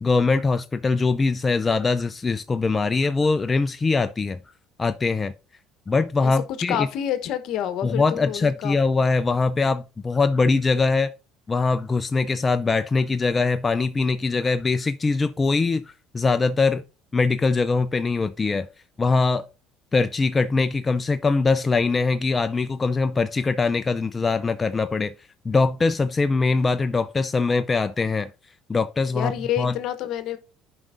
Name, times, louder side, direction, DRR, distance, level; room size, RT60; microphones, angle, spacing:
voice 1, 0.0-4.4 4.8-5.3 5.9-6.9 7.8-11.1 11.5-16.8 17.1-18.7 19.0-19.5 19.9-25.1 25.4-28.3 28.7-29.3 29.6-29.7, left 4 dB, 25° left, 0.4 m, -22 dB
voice 2, 6.7-8.8 29.1-30.4, left 11 dB, 70° left, 0.9 m, -28 dB
11.0 x 5.0 x 2.5 m
supercardioid pair, 80°, 0 cm